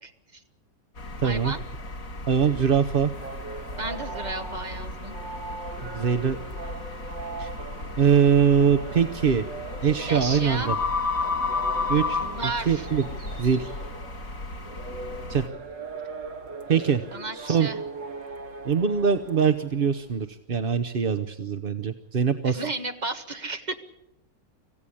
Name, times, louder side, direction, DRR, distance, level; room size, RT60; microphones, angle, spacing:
voice 1, 0.0-0.4 1.2-1.6 3.8-5.2 10.1-10.7 12.2-12.9 17.1-17.8 22.4-23.8, right 2 dB, 25° right, 6 dB, 1.7 m, -33 dB
sound 1, 1.0-15.5, left 3 dB, 50° left, 2.6 m, -33 dB
voice 2, 1.2-1.5 2.3-3.1 5.8-6.4 7.4-7.5 8.0-9.4 9.8-10.7 11.9-12.2 12.7-13.0 13.4-13.7 15.3-15.4 16.7-17.0 17.3-17.7 18.6-22.6, right 7 dB, 40° right, 8 dB, 0.8 m, -22 dB
sound 2, 3.1-20.1, right 3 dB, 85° right, 2.5 m, -40 dB
25.5 x 16.0 x 8.5 m, 0.88 s
omnidirectional pair, 1.9 m